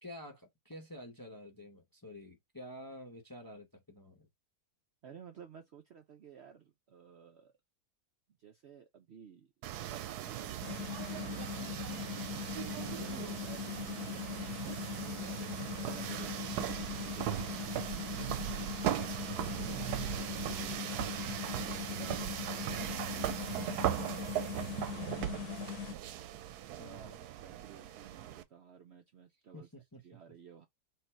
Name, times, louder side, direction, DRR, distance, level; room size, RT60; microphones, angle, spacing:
voice 1, 0.0-4.3 13.0-13.5 15.8-16.2 19.4-19.8 26.8-27.3 29.5-30.0, equal, 20° left, 0.7 m, -50 dB
voice 2, 5.0-7.5 8.4-11.6 12.8-14.4 15.7-17.7 19.1-21.0 21.6-23.3 24.0-25.4 26.8-29.7 30.0-30.7, right 7 dB, 60° right, 0.7 m, -54 dB
sound 1, 9.6-28.4, right 12 dB, 90° right, 1.1 m, -38 dB
sound 2, 10.6-25.9, left 11 dB, 80° left, 1.3 m, -41 dB
4.5 x 2.5 x 4.3 m
omnidirectional pair, 1.6 m